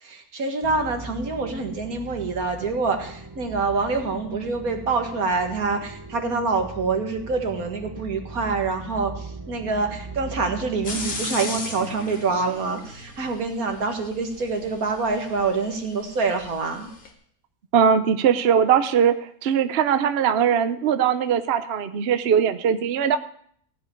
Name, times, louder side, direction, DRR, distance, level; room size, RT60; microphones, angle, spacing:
voice 1, 0.0-16.9, right 4 dB, 85° right, 4 dB, 2.1 m, -26 dB
sound 1, 0.6-11.2, right 3 dB, 20° right, 0.6 m, -39 dB
sound 2, 10.8-17.1, left 3 dB, 85° left, 2.4 m, -37 dB
voice 2, 17.7-23.2, right 8 dB, 55° right, 9 dB, 0.9 m, -20 dB
16.0 x 5.4 x 9.9 m, 0.63 s
omnidirectional pair, 1.5 m